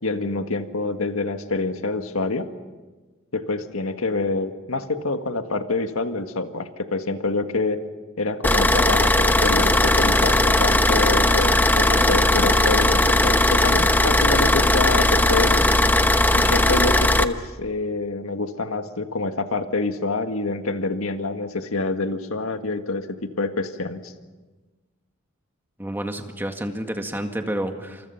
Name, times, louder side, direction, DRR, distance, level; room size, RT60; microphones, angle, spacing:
voice 1, 0.0-2.5 3.3-7.8 8.2-15.6 16.3-24.1, left 3 dB, 85° left, 7 dB, 1.7 m, -27 dB
Car / Idling, 8.4-17.2, left 1 dB, 10° left, 0.9 m, -18 dB
voice 2, 25.8-28.1, right 1 dB, 10° right, 4 dB, 1.9 m, -29 dB
28.5 x 27.5 x 5.8 m, 1.3 s
head